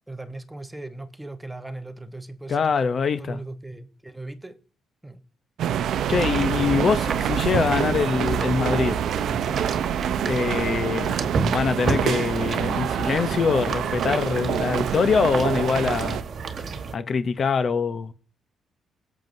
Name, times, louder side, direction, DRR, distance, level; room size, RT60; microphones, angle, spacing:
voice 1, 0.1-2.7 3.2-4.6 5.0-5.2 6.8-7.5, right 2 dB, 10° right, 1.0 m, -38 dB
voice 2, 2.5-3.4 6.1-9.0 10.2-11.1 11.5-16.2 16.9-18.1, left 5 dB, 50° left, 0.7 m, -24 dB
sound 1, 5.6-16.2, right 9 dB, 75° right, 0.6 m, -26 dB
sound 2, 5.9-16.9, right 5 dB, 55° right, 1.3 m, -32 dB
18.0 x 7.5 x 2.7 m
cardioid pair, 90°, 0 cm